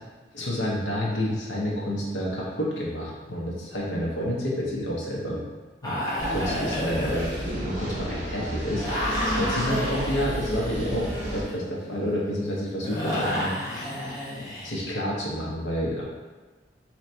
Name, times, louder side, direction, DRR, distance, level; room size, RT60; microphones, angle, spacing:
voice 1, 0.3-5.4 5.8-6.0 6.3-13.5 14.6-16.0, equal, 75° left, -5 dB, 1.0 m, -29 dB
sound 1, 5.8-8.2 8.8-14.8, left 1 dB, 20° left, 0.8 m, -32 dB
sound 2, 6.2-11.4, right 1 dB, 50° right, 0.9 m, -31 dB
3.0 x 2.6 x 4.3 m, 1.3 s
head